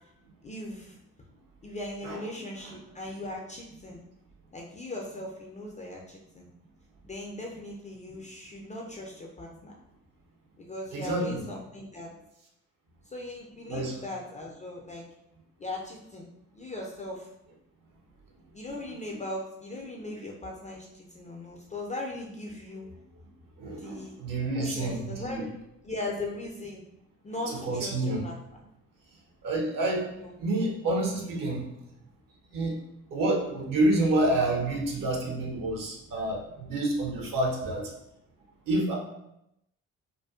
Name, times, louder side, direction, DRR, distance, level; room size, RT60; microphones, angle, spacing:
voice 1, 0.4-1.0 1.6-4.0 4.5-6.5 7.0-9.7 10.6-12.1 13.1-15.1 15.6-16.3 16.5-17.3 18.5-22.9 23.8-24.2 24.5-25.5 25.8-26.8 27.2-28.3 30.1-30.3, left 2 dB, 20° left, -2 dB, 0.3 m, -39 dB
voice 2, 10.9-11.4 13.7-14.0 23.6-25.5 27.5-28.2 29.4-30.1 30.4-31.6 32.5-32.8 33.1-37.9 38.7-39.0, right 2 dB, 55° right, 0 dB, 0.8 m, -28 dB
2.5 x 2.3 x 2.3 m, 0.83 s
hypercardioid pair, 45°, 40 cm